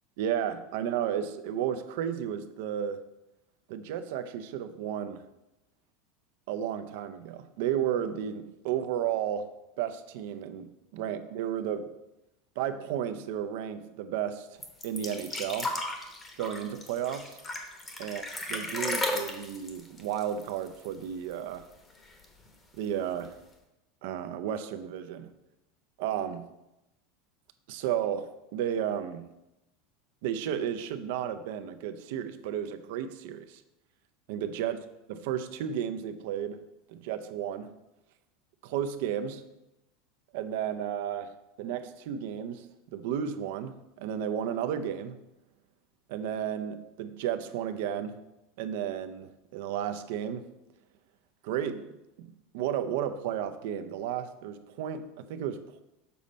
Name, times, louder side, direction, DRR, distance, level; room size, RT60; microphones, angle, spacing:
voice 1, 0.2-3.1 3.7-5.2 6.5-9.5 9.8-11.9 12.6-14.5 14.8-15.7 16.4-17.4 18.0-18.2 18.5-21.6 22.7-23.3 24.0-25.3 26.0-26.5 27.7-29.3 30.2-33.6 34.3-34.8 35.1-36.6 36.9-37.7 38.6-39.4 40.3-45.2 46.1-48.2 48.6-50.5 51.4-55.8, right 9 dB, 65° right, 9 dB, 0.6 m, -33 dB
sound 1, 14.6-21.0 21.3-21.4 21.7-22.4 23.2-23.3, left 2 dB, 15° left, 1.0 m, -35 dB
7.0 x 4.2 x 5.1 m, 0.92 s
supercardioid pair, 160°, 0 cm